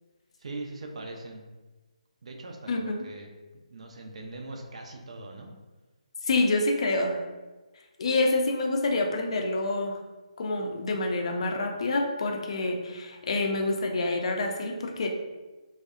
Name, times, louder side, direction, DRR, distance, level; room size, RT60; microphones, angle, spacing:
voice 1, 0.4-1.4 2.2-5.5, right 2 dB, 55° right, 2 dB, 0.4 m, -41 dB
voice 2, 2.7-3.1 6.2-7.2 8.0-10.0 10.4-15.1, left 2 dB, 50° left, 3 dB, 0.4 m, -27 dB
2.6 x 2.0 x 2.4 m, 1.2 s
figure-of-eight pair, 145°, 4 cm